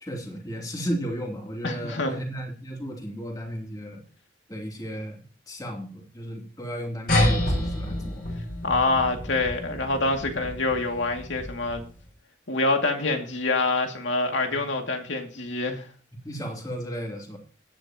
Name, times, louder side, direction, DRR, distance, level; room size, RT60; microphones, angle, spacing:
voice 1, 0.0-4.0 4.5-8.3 14.5-14.6 16.2-17.4, equal, 20° left, 2.8 m, -34 dB
voice 2, 1.6-2.2 8.6-11.8 12.5-15.8, left 3 dB, 90° left, 2.4 m, -26 dB
sound 1, 7.1-12.0, left 1 dB, 50° left, 6.8 m, -28 dB
17.0 x 9.9 x 2.9 m
head